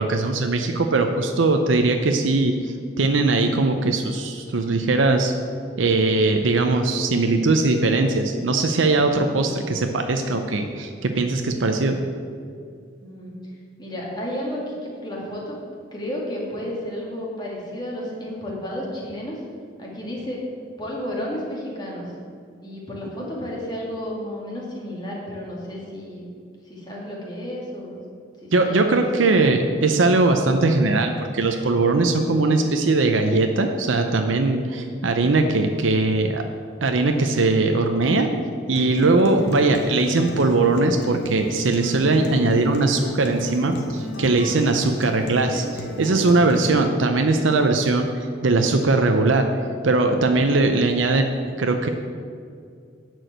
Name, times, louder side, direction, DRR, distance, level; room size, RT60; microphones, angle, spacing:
voice 1, 0.0-5.3 5.8-11.9 28.5-36.4 36.8-38.3 38.7-49.5 49.8-51.9, right 3 dB, 85° right, 5 dB, 0.7 m, -20 dB
voice 2, 13.0-13.3 13.8-15.6 15.9-19.4 19.8-20.4 20.8-22.1 22.6-26.3 26.7-28.0 28.4-29.3, equal, 20° left, -4 dB, 2.3 m, -32 dB
Acoustic guitar, 38.7-46.7, left 1 dB, 60° left, 1.1 m, -34 dB
11.0 x 4.8 x 7.8 m, 2.3 s
head